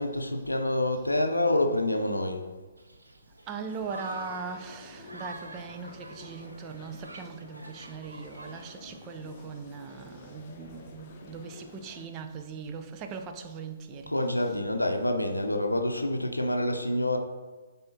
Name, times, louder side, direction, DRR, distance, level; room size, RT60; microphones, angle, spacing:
voice 1, 0.0-2.5 14.1-17.2, left 1 dB, 85° left, 0.6 m, -27 dB
Human group actions, 2.8-9.3, right 1 dB, 75° right, 0.7 m, -46 dB
voice 2, 3.5-14.1, right 5 dB, 25° right, 0.5 m, -40 dB
sound 1, 3.7-12.1, left 3 dB, 30° left, 0.8 m, -50 dB
9.6 x 3.5 x 2.8 m
figure-of-eight pair, 130°, 0 cm